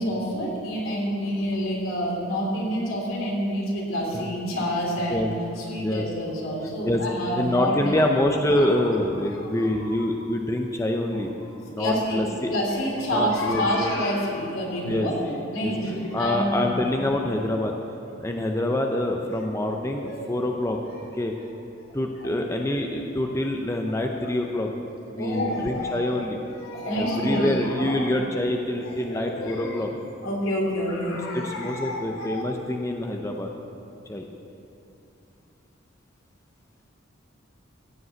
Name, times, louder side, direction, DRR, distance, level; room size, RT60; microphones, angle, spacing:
voice 1, 0.0-5.2 5.6-8.0 8.5-8.7 9.2-10.0 11.8-16.7 19.9-20.2 20.9-21.0 21.3-21.5 22.2-22.3 24.2-24.3 25.1-28.1 28.8-29.8 30.2-32.4, equal, 80° left, -3 dB, 3.2 m, -28 dB
voice 2, 7.4-11.3 11.7-12.6 13.1-14.0 14.9-15.1 15.6-15.7 16.1-17.7 18.2-20.8 21.1-21.3 21.9-24.7 25.1-26.4 27.0-29.9 31.3-33.5 34.1-34.3, left 1 dB, 15° left, 2 dB, 0.6 m, -26 dB
15.5 x 5.4 x 8.0 m, 2.8 s
head